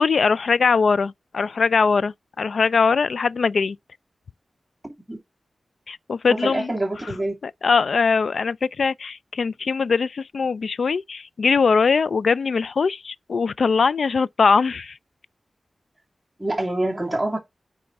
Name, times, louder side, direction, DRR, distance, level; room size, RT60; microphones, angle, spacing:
voice 1, 0.0-3.8 5.9-6.7 7.4-15.0, left 5 dB, 75° left, 0.3 m, -21 dB
voice 2, 6.3-7.3 16.4-17.4, right 1 dB, 10° right, 2.5 m, -25 dB
9.4 x 3.2 x 4.1 m
wide cardioid pair, 110°, 0 cm